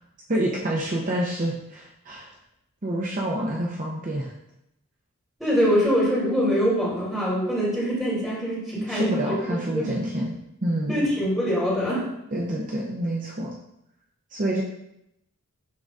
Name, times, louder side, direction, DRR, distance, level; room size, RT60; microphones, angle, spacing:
voice 1, 0.3-2.3 2.8-4.3 8.8-11.1 12.3-13.5 14.3-14.6, right 1 dB, 35° right, -2 dB, 0.7 m, -28 dB
voice 2, 5.4-9.4 9.7-9.9 10.9-12.0, equal, ahead, -7 dB, 2.6 m, -24 dB
11.5 x 3.9 x 2.4 m, 0.81 s
head